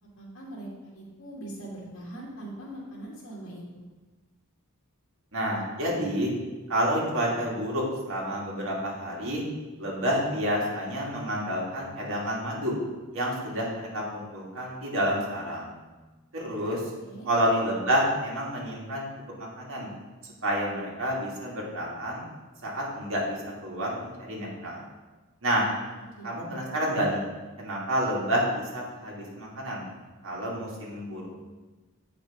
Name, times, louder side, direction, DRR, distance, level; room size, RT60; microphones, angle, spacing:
voice 1, 0.0-3.8 17.0-17.3 25.8-26.7, right 1 dB, 65° left, -4 dB, 2.2 m, -42 dB
voice 2, 5.3-6.3 6.7-9.4 9.8-12.8 13.1-15.7 16.3-16.8 17.2-19.1 19.4-19.9 20.4-22.2 22.6-23.4 23.6-24.8 25.4-25.7 26.2-27.2 27.6-29.8 30.2-31.3, equal, 65° right, -4 dB, 2.3 m, -29 dB
8.1 x 5.0 x 5.0 m, 1.2 s
head